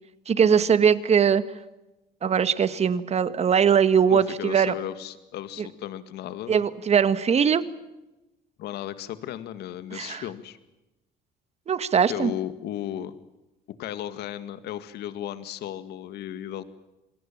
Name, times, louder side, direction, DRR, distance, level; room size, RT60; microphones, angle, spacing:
voice 1, 0.3-1.4 2.2-4.7 6.5-7.6 9.9-10.2 11.7-12.3, right 7 dB, 40° right, 13 dB, 1.7 m, -21 dB
voice 2, 4.1-6.6 8.6-10.6 12.1-13.1 13.8-16.6, left 11 dB, 75° left, 12 dB, 2.0 m, -35 dB
28.0 x 21.5 x 7.5 m, 0.98 s
cardioid pair, 110°, 17 cm